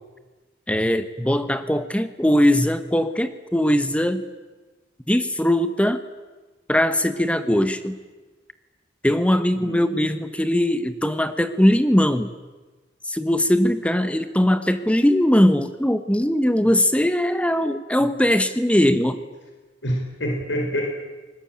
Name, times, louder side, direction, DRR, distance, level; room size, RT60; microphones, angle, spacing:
voice 1, 0.7-4.2 5.1-6.0 6.7-8.0 9.0-12.3 13.1-19.2, left 1 dB, 5° left, 10 dB, 1.1 m, -20 dB
voice 2, 9.6-10.1 19.8-20.8, equal, 80° left, 2 dB, 4.6 m, -27 dB
28.0 x 20.0 x 8.8 m, 1.3 s
head